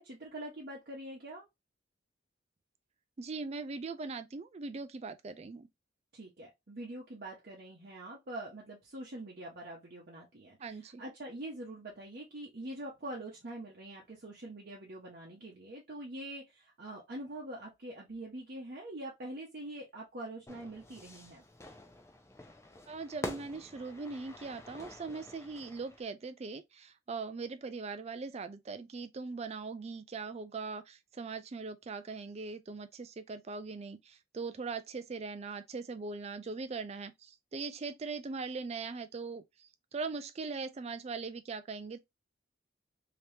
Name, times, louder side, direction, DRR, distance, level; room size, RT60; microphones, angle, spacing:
voice 1, 0.0-1.5 6.1-21.4, right 1 dB, 50° right, 0.9 m, -44 dB
voice 2, 3.2-5.7 10.6-11.0 22.9-42.0, right 4 dB, 35° right, 0.4 m, -40 dB
Fire / Fireworks, 20.5-26.0, left 1 dB, 15° left, 0.6 m, -47 dB
3.3 x 2.9 x 2.7 m
head